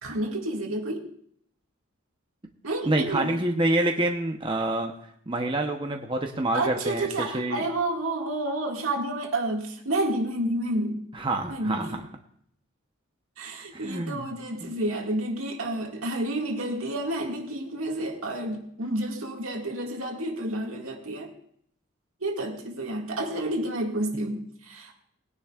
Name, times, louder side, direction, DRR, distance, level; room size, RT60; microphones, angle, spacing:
voice 1, 0.0-1.1 2.6-3.4 6.5-11.0 11.5-12.0 13.4-21.3 22.2-24.9, right 1 dB, 80° right, 1 dB, 2.0 m, -30 dB
voice 2, 2.9-4.9 5.3-7.6 11.1-12.0 13.7-14.3 14.6-14.7, right 2 dB, 25° right, 2 dB, 0.8 m, -27 dB
20.5 x 10.0 x 2.4 m, 0.66 s
head